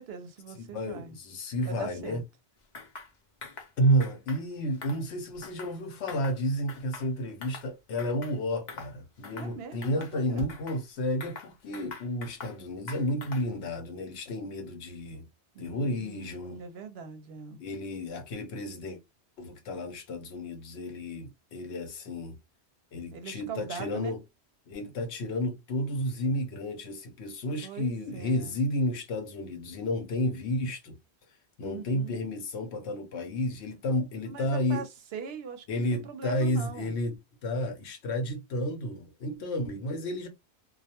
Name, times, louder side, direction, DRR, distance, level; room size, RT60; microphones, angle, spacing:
voice 1, 0.0-1.2 1.6-2.2 9.3-10.5 15.5-17.6 23.1-24.2 27.6-28.6 31.6-32.2 34.2-36.9, right 6 dB, 65° right, 0.7 m, -42 dB
voice 2, 0.6-2.2 3.8-15.2 15.6-16.6 17.6-19.0 19.4-22.4 22.9-24.2 24.7-31.0 31.6-34.8 35.7-37.2 37.4-40.3, equal, 75° left, 0.9 m, -31 dB
sound 1, 2.7-3.1 3.4-3.7 4.0-4.4 4.7-5.8 6.1-6.4 6.7-7.7 8.0-8.4 8.7-8.9 9.2-9.5 9.8-10.8 11.2-12.6 12.9-13.6, left 4 dB, 50° left, 0.7 m, -44 dB
2.3 x 2.1 x 2.8 m
omnidirectional pair, 1.2 m